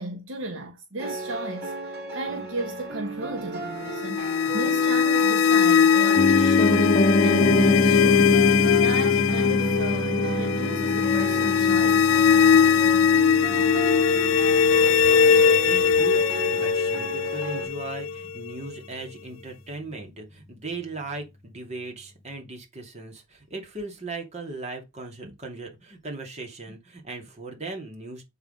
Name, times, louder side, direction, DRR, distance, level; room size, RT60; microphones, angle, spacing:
voice 1, 0.0-6.9 7.2-8.4 8.8-12.3 25.2-25.3, right 2 dB, 70° right, 1.1 m, -34 dB
sound 1, 1.0-17.7, right 3 dB, 50° right, 3.5 m, -35 dB
sound 2, 3.8-18.8, left 7 dB, 70° left, 0.4 m, -21 dB
Piano, 6.2-16.2 16.5-16.6, left 1 dB, 35° left, 0.7 m, -25 dB
voice 2, 15.0-16.2 16.5-28.2, right 3 dB, 35° right, 2.7 m, -38 dB
8.0 x 4.0 x 5.2 m
head